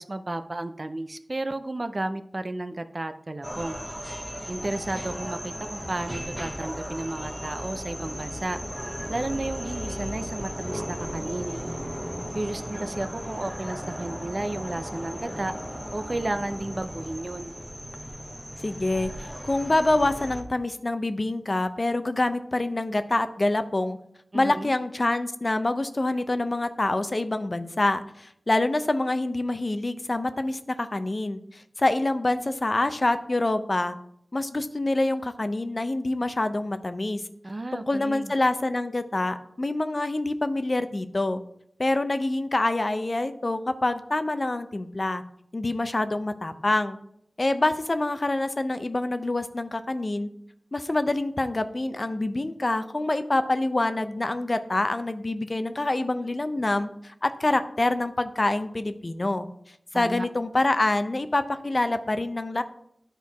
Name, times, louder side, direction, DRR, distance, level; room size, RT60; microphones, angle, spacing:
voice 1, 0.0-3.8 4.5-8.6 9.1-11.6 12.3-15.5 15.9-17.5 24.3-24.7 37.4-38.3 59.9-60.3, right 2 dB, 40° right, 9 dB, 0.5 m, -32 dB
sound 1, 3.4-20.4, equal, 5° right, 1.0 m, -36 dB
voice 2, 18.6-24.0 24.3-33.9 34.3-37.2 37.7-41.4 41.8-45.2 45.5-47.0 47.4-50.3 50.7-59.5 59.9-62.6, left 2 dB, 40° left, 10 dB, 0.6 m, -26 dB
10.5 x 4.5 x 4.6 m, 0.72 s
wide cardioid pair, 55°, 0 cm